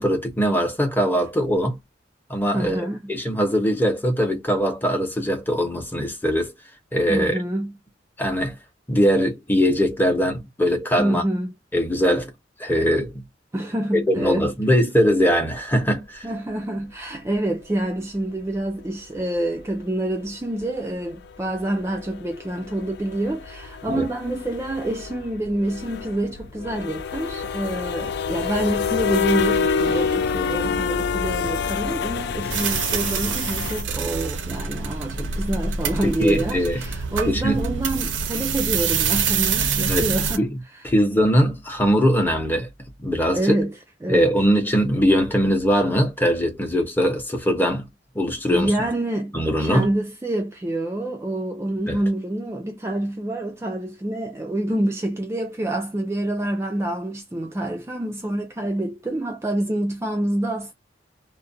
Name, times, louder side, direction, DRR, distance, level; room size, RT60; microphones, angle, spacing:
voice 1, 0.0-1.8 2.3-6.5 6.9-7.4 8.2-8.6 8.9-11.2 11.7-12.3 12.6-13.2 13.9-16.3 23.8-24.1 36.0-36.8 37.2-37.6 39.9-40.1 40.4-40.6 40.8-42.7 43.0-43.6 44.1-47.8 48.1-48.7 49.3-49.9 51.9-52.0, equal, 10° left, 0.8 m, -21 dB
voice 2, 2.5-3.1 7.1-7.7 11.0-11.5 13.5-14.5 16.2-40.5 43.3-43.7 44.0-44.3 48.5-60.7, right 1 dB, 15° right, 0.3 m, -27 dB
sound 1, 17.3-17.4 19.2-19.3 19.7-19.8 20.1-20.3 20.6-20.7 21.0-33.8, left 5 dB, 65° left, 0.4 m, -27 dB
sound 2, 32.5-40.4, right 6 dB, 90° right, 0.5 m, -26 dB
2.4 x 2.0 x 2.6 m
head